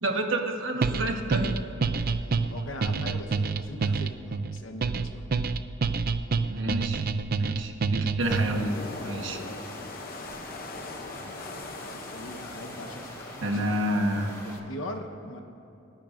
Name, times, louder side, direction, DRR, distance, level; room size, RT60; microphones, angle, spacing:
voice 1, 0.0-1.6 6.5-7.0 7.4-8.7 9.0-9.4 13.4-14.3, right 1 dB, 70° right, 3 dB, 1.3 m, -29 dB
sound 1, 0.8-8.7, right 4 dB, 50° right, 0.4 m, -27 dB
voice 2, 1.9-5.3 9.6-9.9 11.1-11.5 11.9-13.6 14.4-15.4, left 1 dB, 80° left, 5 dB, 1.1 m, -41 dB
sound 2, 8.2-14.6, left 3 dB, 50° left, 0.7 m, -42 dB
sound 3, 8.2-14.6, equal, 15° left, 2.4 m, -43 dB
27.5 x 10.5 x 2.6 m, 3.0 s
head